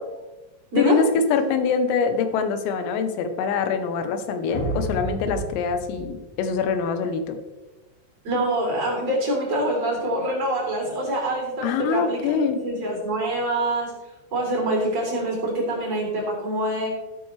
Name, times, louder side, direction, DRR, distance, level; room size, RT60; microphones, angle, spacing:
voice 1, 0.8-7.4 11.6-12.6, left 6 dB, 90° left, 8 dB, 3.8 m, -24 dB
sound 1, 4.5-7.0, right 1 dB, 30° left, 1.7 m, -32 dB
voice 2, 8.2-12.3 12.6-13.9 14.3-16.9, right 1 dB, 35° right, -2 dB, 4.3 m, -25 dB
13.0 x 12.5 x 3.3 m, 1.1 s
omnidirectional pair, 5.8 m